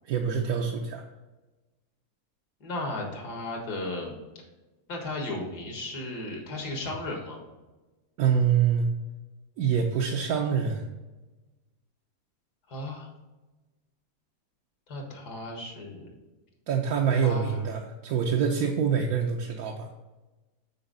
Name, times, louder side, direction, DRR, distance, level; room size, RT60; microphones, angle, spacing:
voice 1, 0.0-1.0 8.2-8.9 9.6-10.9 16.7-19.9, right 7 dB, 70° right, 2 dB, 1.1 m, -25 dB
voice 2, 2.6-4.1 4.9-7.4 12.7-13.1 14.9-16.1 17.1-17.7, left 1 dB, 80° left, 1 dB, 2.1 m, -35 dB
8.0 x 4.4 x 3.9 m, 1.1 s
omnidirectional pair, 1.7 m